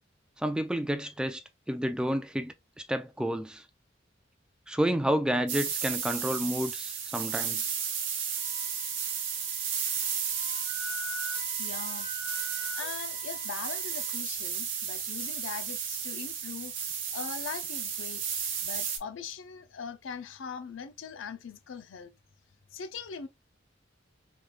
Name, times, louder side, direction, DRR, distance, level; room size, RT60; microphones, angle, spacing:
voice 1, 0.4-3.6 4.7-7.7, equal, 5° right, 0.3 m, -30 dB
sound 1, 5.5-19.0, right 7 dB, 80° right, 1.0 m, -33 dB
Wind instrument woodwind instrument, 8.4-14.2, left 2 dB, 25° left, 1.1 m, -44 dB
voice 2, 11.6-12.1 12.7-18.2 18.6-22.1 22.7-23.3, left 6 dB, 90° left, 0.5 m, -41 dB
3.4 x 3.2 x 2.4 m
head